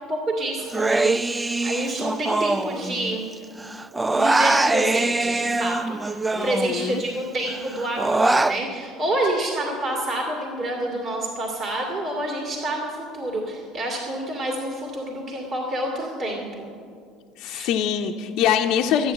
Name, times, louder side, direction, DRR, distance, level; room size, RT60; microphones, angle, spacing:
voice 1, 0.1-3.2 4.1-16.4 17.4-17.7, right 1 dB, 40° right, -1 dB, 2.3 m, -28 dB
Human voice, 0.7-3.3 3.6-7.1 7.5-8.6, right 2 dB, 15° right, 0.3 m, -23 dB
voice 2, 6.3-7.0 17.4-19.1, left 9 dB, 65° left, 3 dB, 0.7 m, -24 dB
12.0 x 9.6 x 7.6 m, 2.3 s
supercardioid pair, 100°, 0 cm